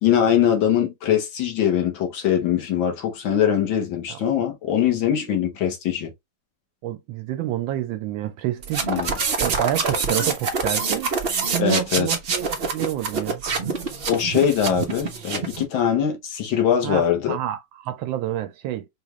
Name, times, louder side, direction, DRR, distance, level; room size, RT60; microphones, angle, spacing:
voice 1, 0.0-6.1 8.8-9.2 11.6-12.1 14.1-17.4, left 9 dB, 90° left, 1.8 m, -22 dB
voice 2, 6.8-9.1 9.4-11.1 11.5-13.4 16.8-18.9, right 12 dB, 85° right, 1.3 m, -28 dB
sound 1, 8.6-15.6, right 4 dB, 45° right, 0.8 m, -26 dB
5.1 x 2.4 x 3.0 m
omnidirectional pair, 2.0 m